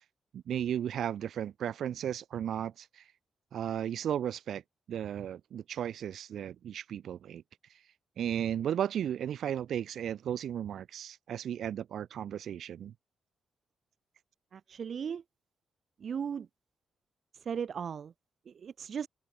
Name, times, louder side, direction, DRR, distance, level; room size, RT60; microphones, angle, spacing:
voice 1, 0.3-3.0 3.5-4.6 4.9-7.4 8.2-12.9, right 9 dB, 75° right, 2.2 m, -35 dB
voice 2, 14.5-15.2 16.0-16.5 17.3-18.1 18.5-19.1, right 7 dB, 60° right, 1.2 m, -37 dB
open air
cardioid pair, 70°, 0 cm